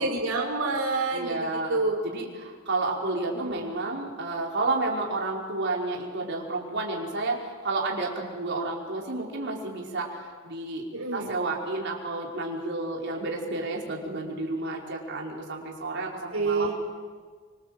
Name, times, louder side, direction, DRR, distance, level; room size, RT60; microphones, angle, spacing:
voice 1, 0.0-2.0 3.3-3.7 10.9-11.4 16.3-16.7, right 3 dB, 90° right, 1 dB, 4.1 m, -28 dB
voice 2, 1.1-10.9 11.1-16.7, right 2 dB, 55° right, -1 dB, 5.1 m, -31 dB
27.5 x 25.5 x 7.9 m, 1.5 s
head